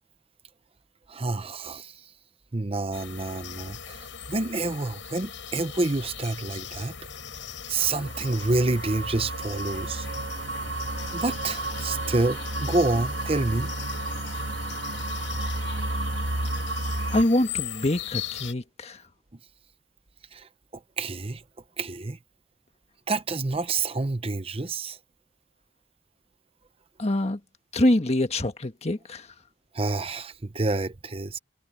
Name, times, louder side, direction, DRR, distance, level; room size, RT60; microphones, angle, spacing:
voice 1, 1.1-2.1 2.5-6.9 7.7-10.1 11.1-13.7 20.3-21.4 21.8-22.2 23.1-25.0 29.7-31.4, right 3 dB, 30° right, 0.8 m, -28 dB
sound 1, 2.9-18.5, left 8 dB, 80° left, 7.4 m, -40 dB
sound 2, 7.8-17.2, right 2 dB, 80° right, 1.7 m, -32 dB
voice 2, 17.1-19.0 27.0-27.4 27.7-29.3, left 1 dB, 35° left, 1.4 m, -24 dB
head